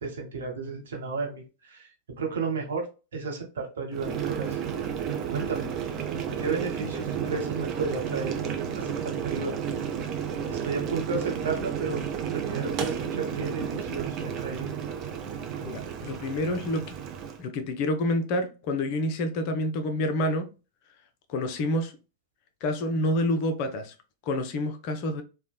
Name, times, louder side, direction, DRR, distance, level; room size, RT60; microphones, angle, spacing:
voice 1, 0.0-1.3 2.2-2.8 3.1-4.5 5.3-5.7 6.4-8.3 8.8-9.6 10.5-12.0 12.3-14.7, right 4 dB, 65° right, 0.8 m, -32 dB
Boiling, 3.9-17.4, right 8 dB, 35° right, 0.4 m, -32 dB
voice 2, 15.6-16.9 17.4-20.5 21.3-21.9 22.6-23.9 24.3-25.2, left 1 dB, 45° left, 0.5 m, -28 dB
3.0 x 2.0 x 2.3 m
figure-of-eight pair, 90°, 0 cm